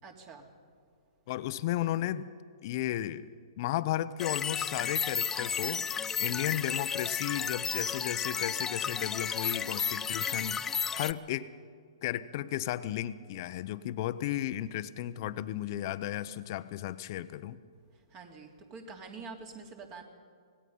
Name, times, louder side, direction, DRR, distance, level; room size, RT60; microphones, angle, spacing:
voice 1, 0.0-0.5 6.1-6.5 18.1-20.0, right 4 dB, 30° right, 3 dB, 3.1 m, -46 dB
voice 2, 1.3-2.3 2.6-3.3 3.6-5.9 6.2-10.6 10.9-11.5 12.0-17.6, left 13 dB, 45° left, 13 dB, 0.9 m, -34 dB
sound 1, 4.2-11.1, left 7 dB, 15° left, 0.5 m, -33 dB
26.5 x 19.0 x 5.6 m, 2.1 s
hypercardioid pair, 135°, 3 cm